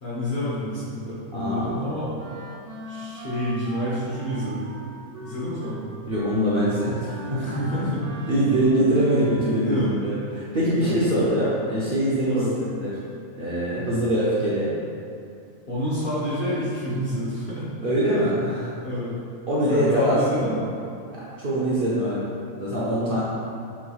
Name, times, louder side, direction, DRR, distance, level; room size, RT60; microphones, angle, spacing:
voice 1, 0.0-2.2 2.9-4.8 5.2-5.9 7.4-8.3 9.6-9.9 10.8-10.9 12.2-12.5 15.7-17.7 18.8-19.1 19.7-20.7, equal, 45° left, -9 dB, 0.8 m, -28 dB
voice 2, 1.3-1.8 6.1-12.9 13.4-14.8 17.8-18.7 19.5-20.5 21.1-23.2, right 1 dB, 55° right, -9 dB, 0.6 m, -23 dB
Wind instrument woodwind instrument, 2.2-9.7, right 1 dB, 85° right, 1.1 m, -40 dB
5.6 x 3.0 x 2.3 m, 2.5 s
omnidirectional pair, 1.5 m